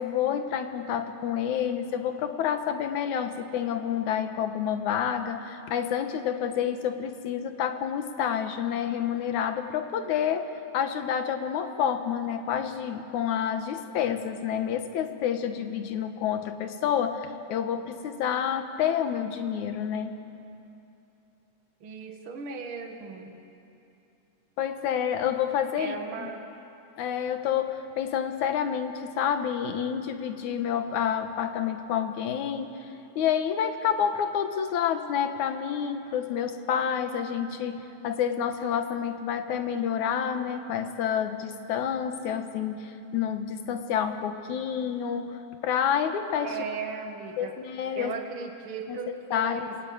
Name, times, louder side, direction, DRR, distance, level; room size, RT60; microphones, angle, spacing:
voice 1, 0.0-20.2 24.6-26.3 27.0-32.9 33.2-37.8 38.0-46.6 47.4-48.1 48.9-49.7, left 8 dB, 85° left, 7 dB, 2.6 m, -29 dB
voice 2, 21.8-23.3 25.8-26.4 46.4-47.6 47.9-49.8, right 5 dB, 50° right, 3 dB, 2.5 m, -37 dB
27.0 x 20.5 x 8.8 m, 2.8 s
omnidirectional pair, 3.4 m